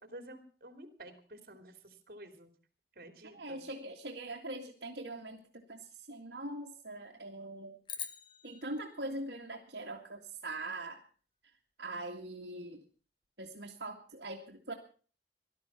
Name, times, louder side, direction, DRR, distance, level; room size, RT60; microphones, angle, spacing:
voice 1, 0.1-2.5 2.9-3.6, right 1 dB, 55° right, 8 dB, 3.2 m, -51 dB
voice 2, 3.3-7.8 8.4-11.0 11.8-12.8 13.4-14.7, right 2 dB, 70° right, 0 dB, 2.1 m, -42 dB
sound 1, 7.9-10.3, left 7 dB, 25° left, 1.1 m, -46 dB
18.5 x 12.5 x 5.9 m, 0.42 s
head